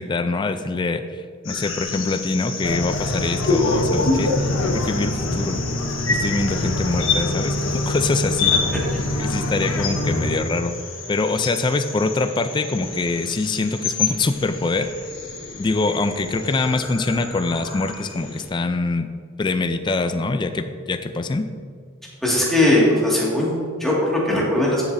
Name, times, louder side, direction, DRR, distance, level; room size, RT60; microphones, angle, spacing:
voice 1, 0.0-4.5 4.8-5.6 6.1-8.5 9.2-10.7 11.1-14.9 15.6-19.1 19.4-21.5, left 3 dB, 20° left, 9 dB, 0.3 m, -24 dB
sound 1, 1.4-18.4, left 4 dB, 70° left, 1.3 m, -28 dB
sound 2, 2.6-10.4, left 1 dB, 85° left, 0.8 m, -25 dB
voice 2, 22.2-24.8, left 1 dB, ahead, -6 dB, 1.9 m, -19 dB
11.5 x 7.0 x 2.6 m, 2.1 s
head